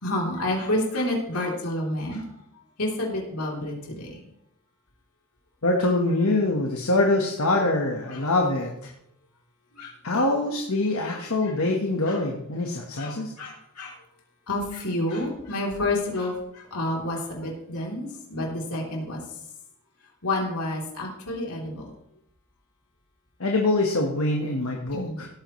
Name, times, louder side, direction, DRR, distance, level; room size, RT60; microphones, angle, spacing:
voice 1, 0.0-2.3 2.8-4.2 8.1-8.2 9.7-10.2 11.0-11.5 12.1-12.2 13.0-14.0 14.5-19.2 20.2-21.9 24.9-25.2, left 1 dB, 90° left, -2 dB, 3.4 m, -29 dB
voice 2, 5.6-8.9 10.0-13.3 23.4-25.3, left 2 dB, 70° left, 0 dB, 1.4 m, -24 dB
17.0 x 9.0 x 3.2 m, 0.75 s
head